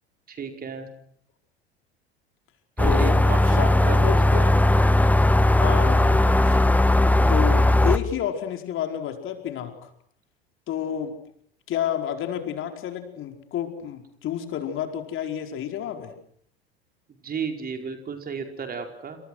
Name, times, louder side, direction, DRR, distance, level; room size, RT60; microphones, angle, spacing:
voice 1, 0.3-0.9 2.8-4.5 17.2-19.2, right 5 dB, 30° right, 5 dB, 4.9 m, -33 dB
voice 2, 2.8-3.2 3.5-3.7 4.0-4.2 5.6-6.6 7.3-9.7 10.7-11.1 11.7-16.1, left 10 dB, 40° left, 5 dB, 4.7 m, -30 dB
sound 1, 2.8-8.0, left 1 dB, 5° left, 1.3 m, -18 dB
29.5 x 27.0 x 6.4 m, 0.66 s
figure-of-eight pair, 75°, 31 cm